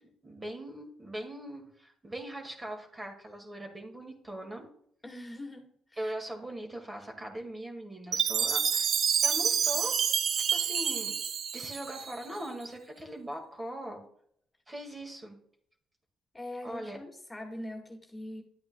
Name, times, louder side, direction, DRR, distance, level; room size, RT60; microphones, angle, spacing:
voice 1, 0.0-4.7 6.0-8.9 9.2-10.0 10.5-11.2 11.5-14.0 14.7-15.4 16.6-17.0, right 1 dB, 20° right, 3 dB, 1.9 m, -40 dB
voice 2, 5.0-6.1 16.3-18.4, left 1 dB, 15° left, 0 dB, 1.8 m, -42 dB
Chime, 8.1-12.4, right 7 dB, 60° right, 0.5 m, -28 dB
11.0 x 8.6 x 2.2 m, 0.66 s
cardioid pair, 90°, 0 cm